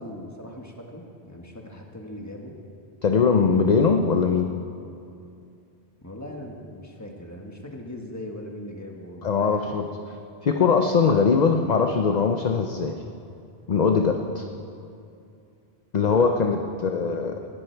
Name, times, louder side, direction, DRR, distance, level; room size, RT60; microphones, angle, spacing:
voice 1, 0.0-2.5 6.0-9.8 15.9-16.6, left 1 dB, 15° left, 1 dB, 1.5 m, -40 dB
voice 2, 3.0-4.5 9.2-9.9 10.4-13.0 13.7-14.5 15.9-17.3, left 5 dB, 45° left, 4 dB, 0.8 m, -21 dB
20.0 x 12.0 x 4.6 m, 2.5 s
omnidirectional pair, 1.1 m